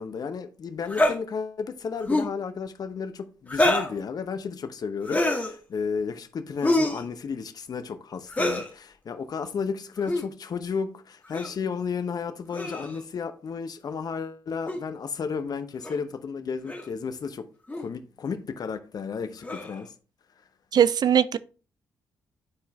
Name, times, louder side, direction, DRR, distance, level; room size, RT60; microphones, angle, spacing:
voice 1, 0.0-19.9, left 5 dB, 50° left, 0.8 m, -33 dB
sound 1, 0.9-1.2 2.0-2.3 3.5-3.9 5.0-5.5 6.6-7.0 8.3-8.7 10.0-10.2 11.3-11.6 12.5-13.0 14.7-14.8 15.8-16.0 16.7-16.9 17.7-17.9 19.4-19.8, left 1 dB, 20° left, 1.7 m, -25 dB
voice 2, 20.7-21.4, right 9 dB, 50° right, 0.5 m, -20 dB
9.5 x 4.6 x 3.1 m
hypercardioid pair, 45°, 8 cm